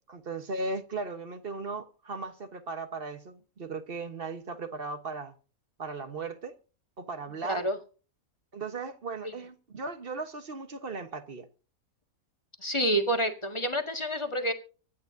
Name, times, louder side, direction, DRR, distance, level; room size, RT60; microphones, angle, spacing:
voice 1, 0.1-5.3 5.8-6.5 7.0-7.7 8.5-11.5, right 3 dB, 45° right, 1.3 m, -37 dB
voice 2, 12.6-14.5, right 1 dB, 20° left, 1.7 m, -28 dB
25.0 x 9.4 x 2.7 m
omnidirectional pair, 1.5 m